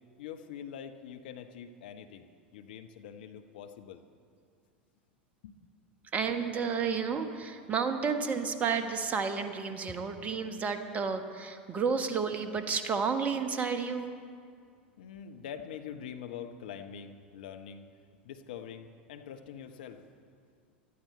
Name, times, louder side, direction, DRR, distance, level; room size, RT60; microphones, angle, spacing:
voice 1, 0.2-2.3 2.5-4.0 5.4-5.7 15.0-20.3, left 8 dB, 60° left, 7 dB, 0.9 m, -44 dB
voice 2, 6.1-14.1, right 5 dB, 25° right, 8 dB, 1.2 m, -31 dB
18.0 x 13.5 x 4.4 m, 2.2 s
figure-of-eight pair, 80°, 6 cm